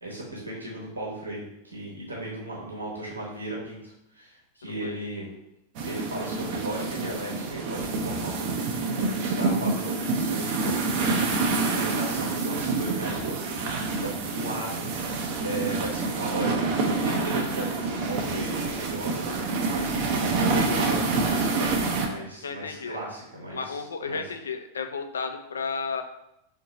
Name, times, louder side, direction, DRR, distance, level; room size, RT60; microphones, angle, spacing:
voice 1, 0.0-5.3 5.8-14.9 15.4-24.2, right 1 dB, 80° right, -4 dB, 1.0 m, -36 dB
voice 2, 4.6-5.0 22.4-23.0 23.5-26.0, left 5 dB, 70° left, 7 dB, 0.4 m, -33 dB
sound 1, 5.7-22.1, right 3 dB, 45° right, 0.6 m, -27 dB
3.7 x 2.6 x 4.1 m, 0.83 s
figure-of-eight pair, 90°, 0 cm